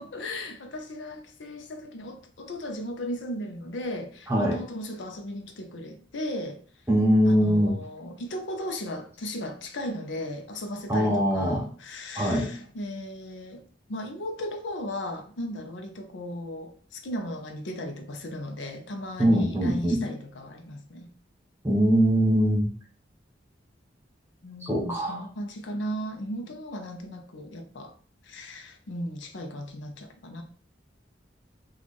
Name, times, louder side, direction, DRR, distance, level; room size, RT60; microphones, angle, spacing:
voice 1, 0.0-6.6 7.2-21.1 24.4-27.9 28.2-30.4, equal, 85° left, 0.6 m, -36 dB
voice 2, 4.3-4.6 6.9-7.7 10.9-11.6 12.2-12.5 19.2-20.1 21.6-22.7 24.6-25.2, equal, 15° right, 1.2 m, -22 dB
3.0 x 2.4 x 4.1 m
head